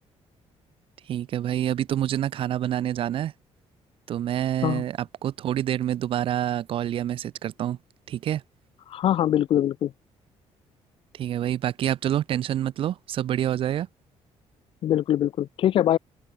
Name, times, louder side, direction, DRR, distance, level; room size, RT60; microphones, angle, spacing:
voice 1, 1.1-3.3 4.1-7.8 8.1-8.4 11.1-13.9, right 11 dB, 50° right, 0.7 m, -27 dB
voice 2, 8.9-9.9 14.8-16.0, left 11 dB, 50° left, 0.5 m, -23 dB
open air
cardioid pair, 160°, 11 cm